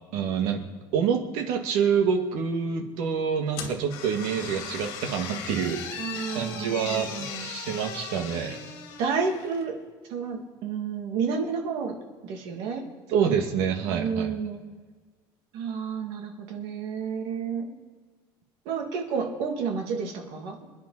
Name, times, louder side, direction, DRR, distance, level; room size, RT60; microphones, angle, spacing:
voice 1, 0.1-0.6 0.9-7.1 7.4-8.6 13.1-14.3, right 7 dB, 80° right, 4 dB, 2.2 m, -27 dB
sound 1, 3.5-9.7, left 7 dB, 70° left, 2.9 m, -38 dB
voice 2, 6.0-7.5 9.0-9.8 10.1-12.0 12.2-12.8 13.9-14.6 15.5-17.7 18.6-20.6, right 5 dB, 65° right, 1 dB, 2.8 m, -30 dB
27.5 x 10.0 x 4.3 m, 1.5 s
cardioid pair, 175°, 10 cm